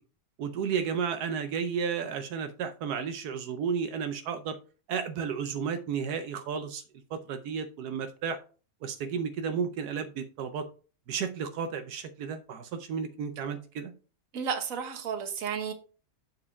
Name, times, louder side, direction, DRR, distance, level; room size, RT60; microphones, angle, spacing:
voice 1, 0.4-4.6 4.9-6.8 7.1-8.4 8.8-10.7 11.1-13.9, right 6 dB, 85° right, 8 dB, 1.3 m, -32 dB
voice 2, 14.3-15.7, right 6 dB, 60° right, 7 dB, 1.5 m, -32 dB
7.3 x 4.8 x 4.8 m, 0.37 s
omnidirectional pair, 1.6 m